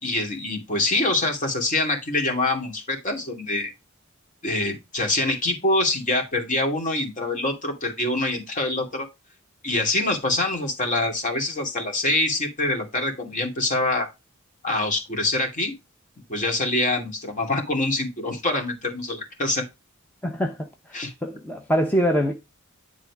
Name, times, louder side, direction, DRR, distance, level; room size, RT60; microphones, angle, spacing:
voice 1, 0.0-3.7 4.4-9.1 9.6-14.1 14.6-15.7 16.3-19.6 20.9-21.1, left 2 dB, 35° left, 2.7 m, -25 dB
voice 2, 20.2-20.6 21.2-22.3, equal, 10° left, 0.8 m, -23 dB
10.5 x 4.1 x 4.8 m
head